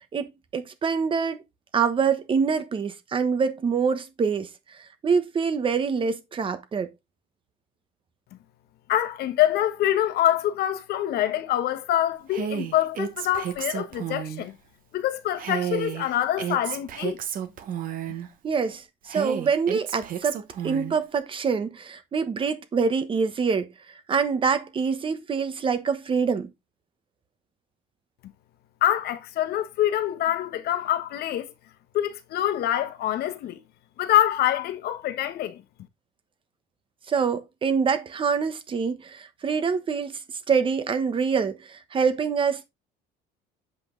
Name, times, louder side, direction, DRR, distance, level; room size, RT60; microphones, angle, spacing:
voice 1, 0.1-1.4 1.7-4.5 4.8-6.9 18.4-20.4 20.6-23.7 24.1-26.5 37.1-40.2 40.5-42.6, right 5 dB, 25° right, 1.2 m, -25 dB
voice 2, 8.9-14.5 14.9-17.2 28.8-31.5 31.9-33.6 34.0-35.6, left 12 dB, 55° left, 1.2 m, -25 dB
Female speech woman speaking, 12.3-14.5 15.4-18.3 19.1-21.0, right 9 dB, 45° right, 1.4 m, -32 dB
7.8 x 5.3 x 3.9 m
cardioid pair, 155°, 19 cm